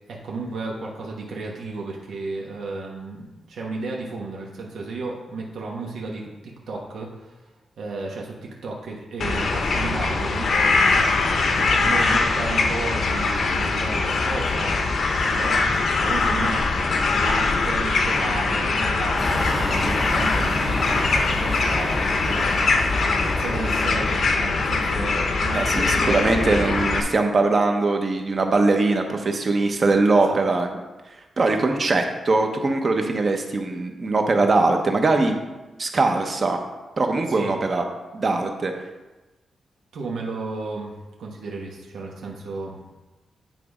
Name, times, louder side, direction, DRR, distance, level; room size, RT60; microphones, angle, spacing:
voice 1, 0.1-7.4 7.8-11.2 11.5-16.8 17.2-26.2 30.1-30.4 37.3-37.6 39.9-42.8, right 3 dB, 90° right, -2 dB, 1.3 m, -33 dB
sound 1, 9.2-27.0, left 3 dB, 50° left, 0.7 m, -22 dB
sound 2, 19.2-24.5, equal, 10° left, 0.6 m, -30 dB
voice 2, 25.5-30.7 31.4-35.4 35.8-36.6 37.0-37.8 38.1-38.7, right 3 dB, 35° right, 4 dB, 0.8 m, -21 dB
9.2 x 4.0 x 4.9 m, 1.1 s
wide cardioid pair, 175°, 0 cm